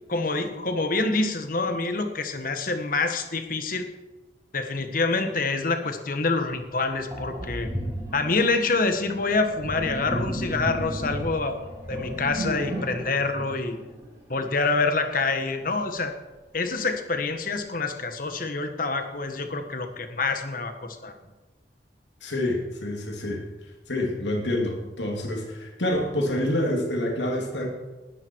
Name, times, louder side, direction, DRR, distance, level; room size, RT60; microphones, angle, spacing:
voice 1, 0.1-3.9 4.5-7.7 8.1-11.6 11.9-13.8 14.3-16.1 16.5-20.7 21.0-21.1, left 3 dB, 50° left, 7 dB, 1.5 m, -26 dB
Sink (filling or washing), 6.4-6.5 7.1-14.4, right 1 dB, 20° right, 6.9 m, -34 dB
voice 2, 22.2-23.4 23.9-27.7, left 1 dB, 80° left, 1 dB, 3.0 m, -27 dB
20.0 x 13.0 x 4.7 m, 1.2 s
head